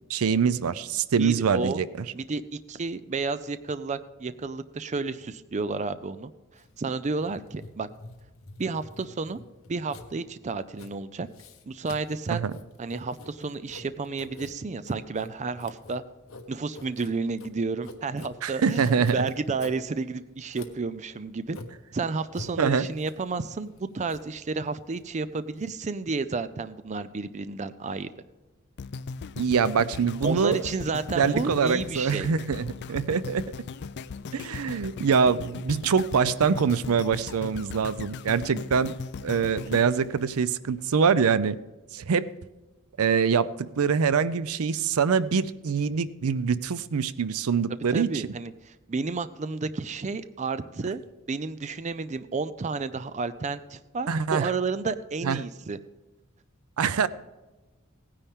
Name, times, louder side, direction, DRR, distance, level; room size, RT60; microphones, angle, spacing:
voice 1, 0.1-1.9 12.3-12.5 18.4-19.2 22.6-22.9 29.4-30.6 31.2-33.4 34.3-38.9 39.2-41.6 41.9-42.3 43.0-48.1 54.1-54.5 55.2-55.4 56.8-57.1, right 6 dB, 80° right, 17 dB, 0.5 m, -24 dB
voice 2, 1.2-1.8 2.1-2.4 2.7-6.3 6.8-7.9 8.6-9.4 9.7-11.3 11.7-12.4 12.8-16.0 16.5-21.6 21.9-28.1 30.2-32.3 47.7-51.0 51.3-55.8, right 4 dB, 35° right, 13 dB, 0.4 m, -31 dB
Writing, 6.5-25.7, left 2 dB, 65° left, 1.2 m, -47 dB
sound 1, 28.8-41.0 41.5-41.6, left 5 dB, 50° left, 0.4 m, -38 dB
17.0 x 9.9 x 3.6 m, 1.1 s
head